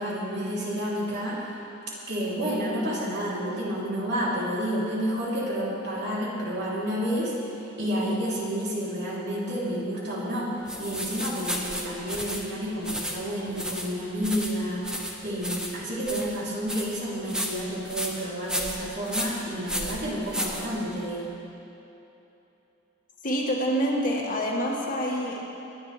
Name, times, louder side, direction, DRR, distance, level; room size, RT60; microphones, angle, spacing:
voice 1, 0.0-1.5 2.1-7.3 7.8-21.3, equal, 55° right, -6 dB, 3.5 m, -30 dB
sound 1, 10.7-21.1, equal, 5° right, 1.3 m, -34 dB
voice 2, 23.2-25.4, equal, 45° left, -2 dB, 2.0 m, -26 dB
25.0 x 10.5 x 3.4 m, 3.0 s
head